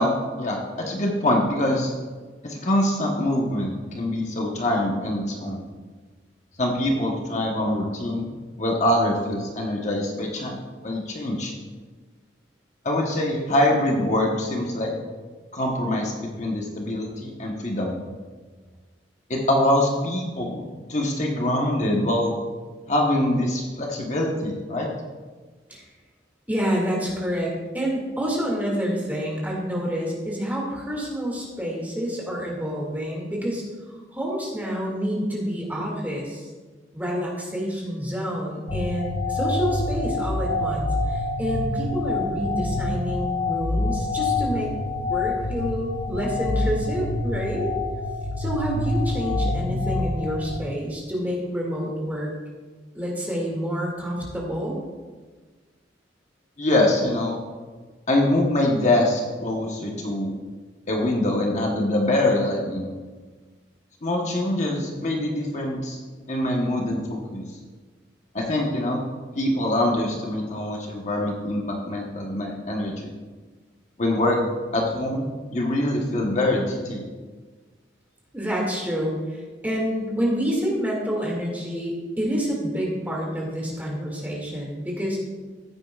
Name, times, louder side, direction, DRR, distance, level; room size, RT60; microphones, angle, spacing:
voice 1, 0.0-1.9 2.4-5.6 6.6-8.3 8.6-10.6 10.8-11.5 12.8-14.9 15.5-18.0 19.3-20.6 20.9-22.3 22.9-24.9 56.6-57.4 58.1-60.3 60.9-62.9 64.0-66.0 66.3-67.4 68.3-69.0 69.3-73.1 74.0-74.4 74.7-75.2 75.5-77.1, left 1 dB, 40° left, 0 dB, 1.1 m, -24 dB
voice 2, 26.5-33.6 34.1-36.5 36.9-44.7 45.1-47.7 48.4-52.3 52.9-54.8 78.3-85.2, equal, 10° right, -3 dB, 2.2 m, -28 dB
sound 1, 38.7-50.6, left 2 dB, 70° left, 0.7 m, -26 dB
15.0 x 8.8 x 2.4 m, 1.4 s
head